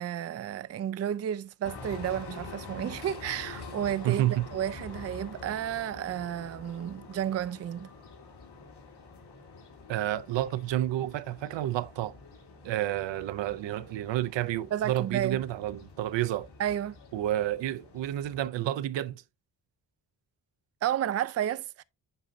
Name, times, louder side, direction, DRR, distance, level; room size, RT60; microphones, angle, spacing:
voice 1, 0.0-7.9 14.7-15.4 16.6-17.0 20.8-21.8, right 10 dB, 40° right, 0.4 m, -32 dB
sound 1, 1.6-18.5, left 4 dB, 65° left, 2.4 m, -47 dB
voice 2, 4.0-4.5 9.9-12.2 12.6-16.5 17.1-19.2, right 13 dB, 85° right, 0.6 m, -30 dB
7.9 x 5.1 x 2.6 m
cardioid pair, 75°, 43 cm